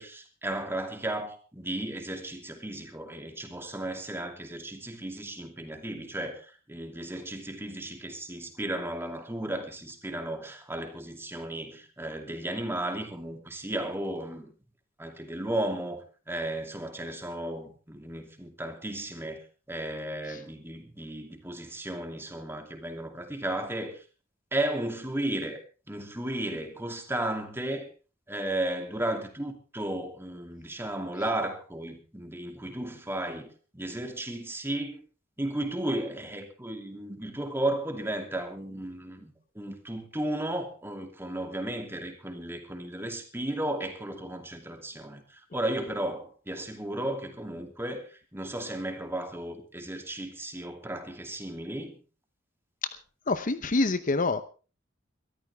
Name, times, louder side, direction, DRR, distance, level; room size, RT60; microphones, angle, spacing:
voice 1, 0.0-14.5 15.0-19.4 19.7-24.0 24.5-25.6 25.9-27.9 28.3-35.0 35.4-48.1 48.3-52.0, right 1 dB, 15° right, 4 dB, 2.8 m, -34 dB
voice 2, 53.3-54.4, left 3 dB, 45° left, 12 dB, 0.8 m, -26 dB
22.5 x 13.5 x 3.5 m, 0.35 s
head